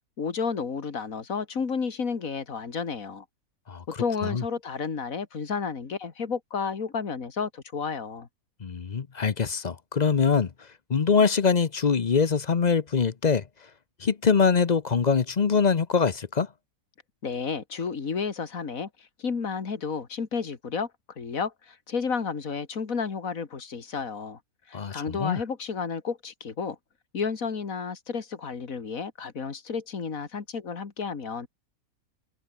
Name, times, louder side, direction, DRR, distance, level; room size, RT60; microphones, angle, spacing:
voice 1, 0.2-3.2 4.0-8.3 17.2-20.9 21.2-24.4 24.7-26.8 27.1-31.5, left 5 dB, 65° left, 2.5 m, -31 dB
voice 2, 8.6-10.5 10.9-13.4 14.0-16.5 24.7-25.4, left 5 dB, 35° left, 0.7 m, -23 dB
omnidirectional pair, 1.6 m